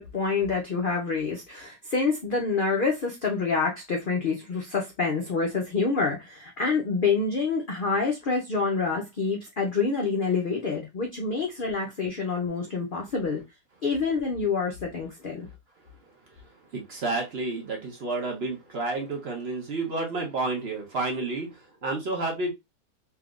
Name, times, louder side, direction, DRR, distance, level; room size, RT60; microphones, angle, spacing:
voice 1, 0.0-13.4 13.8-15.5, left 4 dB, 75° left, 0.4 m, -27 dB
voice 2, 16.7-22.5, right 3 dB, 50° right, 0.9 m, -30 dB
3.4 x 2.8 x 2.3 m
omnidirectional pair, 1.7 m